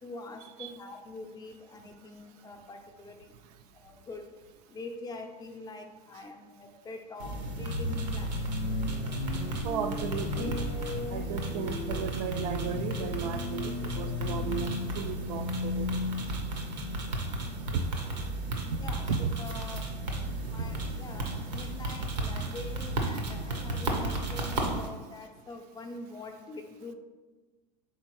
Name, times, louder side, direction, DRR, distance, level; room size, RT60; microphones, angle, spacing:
voice 1, 0.0-3.3 3.8-4.2 4.7-8.3 18.8-19.9 20.4-26.9, left 2 dB, 20° left, 4 dB, 0.5 m, -44 dB
sound 1, 7.2-24.9, right 2 dB, 85° right, 0.8 m, -34 dB
sound 2, 7.8-17.7, left 4 dB, 85° left, 0.6 m, -36 dB
voice 2, 9.6-10.6 11.1-15.9 17.7-17.8 18.7-18.8 19.1-19.3, right 7 dB, 65° right, 8 dB, 0.4 m, -35 dB
4.5 x 3.7 x 3.0 m, 1.3 s
hypercardioid pair, 100°, 21 cm